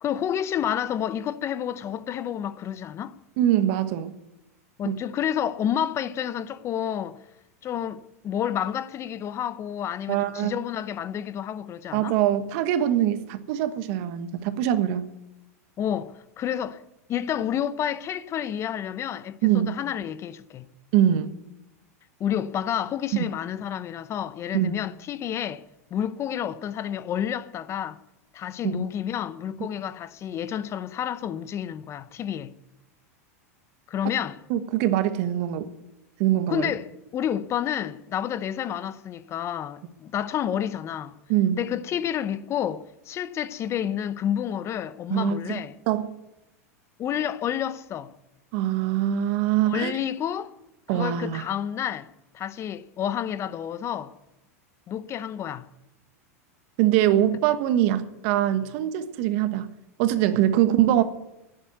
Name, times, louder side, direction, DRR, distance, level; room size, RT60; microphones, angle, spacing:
voice 1, 0.0-3.2 4.8-7.2 7.6-12.2 15.8-16.8 17.1-20.6 22.2-25.6 25.9-28.0 28.3-32.5 33.9-34.4 36.5-41.2 41.6-45.7 47.0-48.1 49.7-50.5 50.9-52.1 52.3-54.1 54.9-55.7, left 9 dB, 35° left, 0.8 m, -30 dB
voice 2, 3.4-4.1 4.8-5.0 10.1-10.6 11.9-15.0 19.4-19.7 20.9-21.3 24.5-24.8 28.6-28.8 34.5-35.7 36.2-36.7 41.3-41.6 45.1-45.6 45.9-46.1 48.5-49.9 50.9-51.4 56.8-59.7 60.0-61.0, right 11 dB, 55° right, 1.3 m, -23 dB
11.5 x 10.5 x 9.2 m
hypercardioid pair, 110°, 8 cm